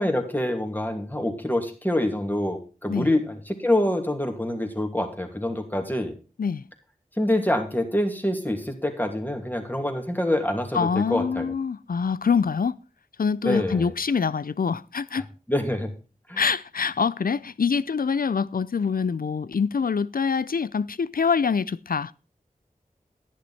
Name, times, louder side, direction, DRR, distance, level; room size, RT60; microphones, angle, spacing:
voice 1, 0.0-6.1 7.2-11.5 13.4-13.9 15.5-15.9 16.3-16.4, left 1 dB, 10° left, 2.7 m, -26 dB
voice 2, 10.7-12.8 13.2-15.3 16.4-22.1, left 5 dB, 75° left, 0.5 m, -25 dB
11.5 x 10.5 x 4.2 m
wide cardioid pair, 60°, 15 cm